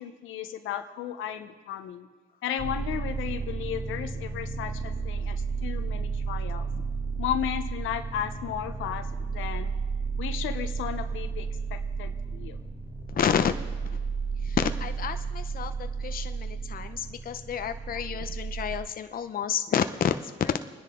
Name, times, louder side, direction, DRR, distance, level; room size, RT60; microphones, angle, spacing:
voice 1, 0.0-2.1 2.4-6.7 7.2-9.7 10.2-12.6, left 10 dB, 85° left, 8 dB, 1.0 m, -34 dB
sound 1, 2.6-18.8, right 5 dB, 20° right, 3.1 m, -33 dB
voice 2, 13.1-13.5 14.4-20.6, left 8 dB, 45° left, 8 dB, 0.8 m, -29 dB
26.0 x 10.0 x 3.8 m, 1.4 s
cardioid pair, 90°, 20 cm